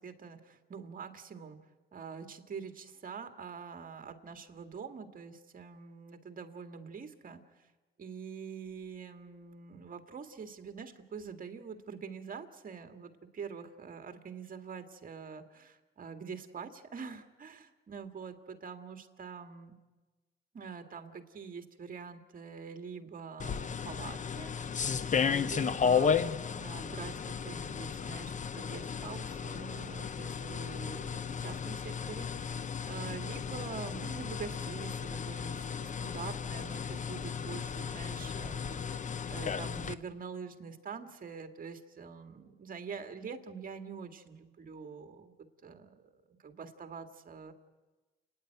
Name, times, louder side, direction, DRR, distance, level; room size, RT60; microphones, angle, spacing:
voice 1, 0.0-1.6 1.9-7.7 8.0-19.8 20.5-24.9 25.2-47.5, right 6 dB, 45° right, 6 dB, 2.0 m, -45 dB
sound 1, 23.4-39.9, left 6 dB, 40° left, 0.8 m, -34 dB
30.0 x 10.0 x 9.3 m, 1.2 s
cardioid pair, 90°, 20 cm